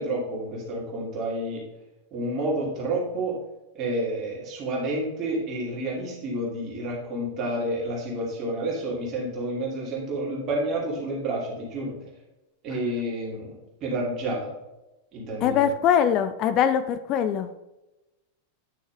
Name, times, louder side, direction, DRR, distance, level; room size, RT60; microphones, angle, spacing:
voice 1, 0.0-1.6 2.1-3.4 3.7-11.9 12.6-14.5 15.1-15.7, right 1 dB, 35° right, -3 dB, 3.2 m, -29 dB
voice 2, 15.4-17.5, left 8 dB, 35° left, 11 dB, 0.5 m, -22 dB
9.9 x 6.3 x 3.5 m, 1.0 s
figure-of-eight pair, 90°, 0 cm